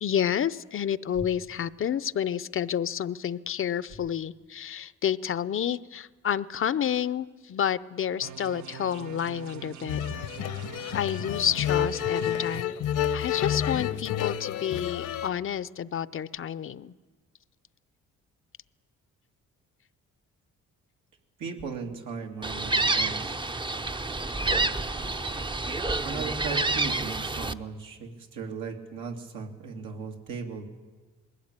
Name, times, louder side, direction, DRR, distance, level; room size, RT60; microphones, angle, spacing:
voice 1, 0.0-10.1 10.9-12.8 13.1-16.9, left 9 dB, 45° left, 17 dB, 0.6 m, -30 dB
sound 1, 8.2-12.6, right 10 dB, 70° right, 0.8 m, -44 dB
sound 2, 9.9-15.3, left 10 dB, 75° left, 1.0 m, -29 dB
voice 2, 21.4-23.4 26.0-30.7, right 5 dB, 85° right, 2 dB, 2.4 m, -37 dB
Gull seagull, 22.4-27.5, right 2 dB, 15° right, 0.6 m, -28 dB
21.0 x 16.0 x 8.9 m, 1.3 s
cardioid pair, 90°, 30 cm